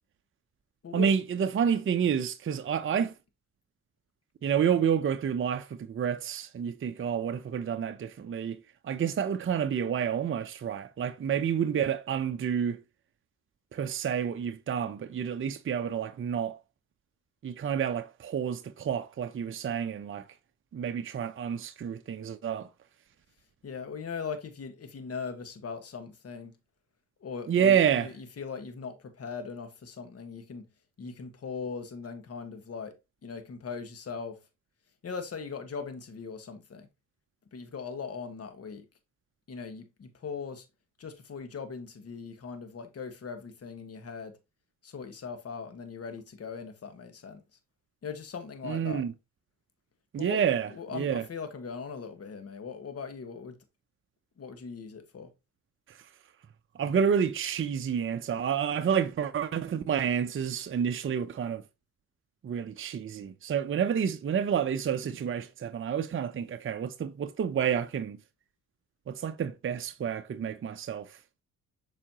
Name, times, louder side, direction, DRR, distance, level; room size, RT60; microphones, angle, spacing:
voice 1, 0.9-3.1 4.4-12.8 13.7-16.6 17.4-20.3 20.7-22.7 27.5-28.1 48.6-49.1 50.1-51.3 55.9-56.0 56.7-61.6 62.4-68.2 69.1-71.2, right 8 dB, 40° right, 0.7 m, -29 dB
voice 2, 23.6-26.6 27.2-30.7 31.0-32.9 33.2-34.4 35.0-36.9 37.5-38.8 39.5-40.6 41.0-44.3 44.8-47.4 48.0-49.0 50.2-53.6 54.4-55.3, left 5 dB, 45° left, 1.6 m, -40 dB
7.0 x 4.9 x 3.0 m
supercardioid pair, 65°, 33 cm